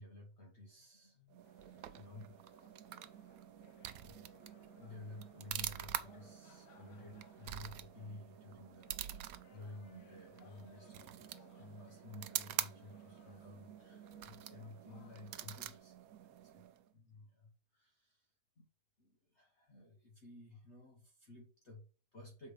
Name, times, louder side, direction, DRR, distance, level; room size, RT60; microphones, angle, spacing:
voice 1, 0.0-2.4 4.0-4.2 4.8-16.7 16.9-18.3 18.6-18.7 19.0-22.5, left 2 dB, 45° left, 1 dB, 1.3 m, -54 dB
sound 1, 1.3-16.9, right 12 dB, 70° right, 1.0 m, -46 dB
sound 2, 1.4-15.8, left 7 dB, 90° left, 1.6 m, -66 dB
6.8 x 4.4 x 5.1 m, 0.37 s
omnidirectional pair, 1.8 m